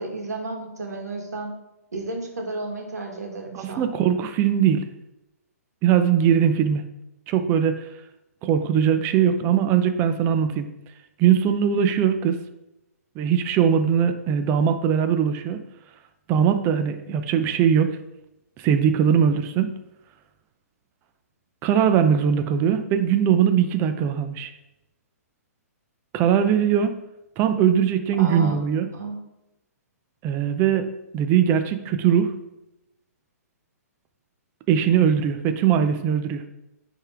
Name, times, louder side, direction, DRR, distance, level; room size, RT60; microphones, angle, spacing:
voice 1, 0.0-1.5 1.9-3.9 28.2-28.6 28.9-29.2, right 3 dB, 80° right, 1 dB, 1.8 m, -32 dB
voice 2, 3.5-4.8 5.8-6.8 7.3-7.8 8.4-10.7 11.2-12.4 13.2-15.6 16.3-17.9 18.6-19.7 21.6-24.5 26.1-26.9 27.4-28.9 30.2-32.3 34.7-36.5, right 8 dB, 25° right, 8 dB, 0.5 m, -20 dB
9.7 x 3.6 x 3.5 m, 0.91 s
hypercardioid pair, 130°, 9 cm